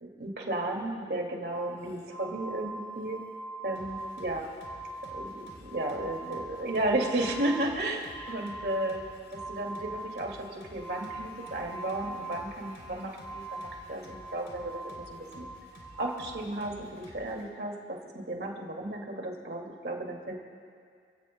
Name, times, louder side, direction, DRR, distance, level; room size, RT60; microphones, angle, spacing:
voice 1, 0.0-3.2 3.6-4.5 5.1-9.0 9.3-15.5 16.0-20.4, right 1 dB, 60° right, 1 dB, 2.2 m, -34 dB
sound 1, 1.5-16.4, right 2 dB, 10° left, 2.8 m, -43 dB
sound 2, 3.8-17.5, left 1 dB, 90° left, 3.2 m, -52 dB
29.0 x 16.5 x 2.2 m, 2.2 s
head